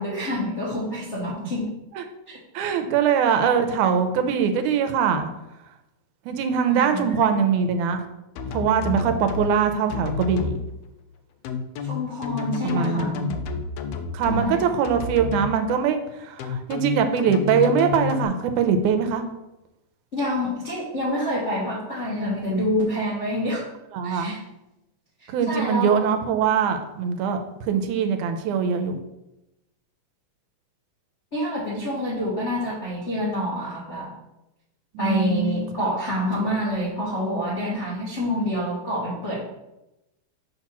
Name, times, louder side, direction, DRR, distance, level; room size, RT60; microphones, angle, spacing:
voice 1, 0.0-1.7 2.3-2.4 6.7-7.2 11.8-13.1 14.2-14.6 20.1-23.6 24.0-24.4 25.2-26.0 31.3-34.1 35.0-39.4, left 1 dB, 60° left, -6 dB, 0.7 m, -27 dB
voice 2, 2.6-5.3 6.3-8.1 8.5-10.6 12.6-13.4 14.1-19.2 23.9-24.4 25.3-27.4 27.7-29.0 34.9-35.9, right 6 dB, 90° right, 7 dB, 2.1 m, -22 dB
sound 1, 8.4-9.5 9.9-10.6 11.4-14.4 14.8-15.5 16.4-18.2, left 5 dB, 85° left, 1.5 m, -30 dB
6.6 x 2.9 x 5.8 m, 0.93 s
omnidirectional pair, 3.5 m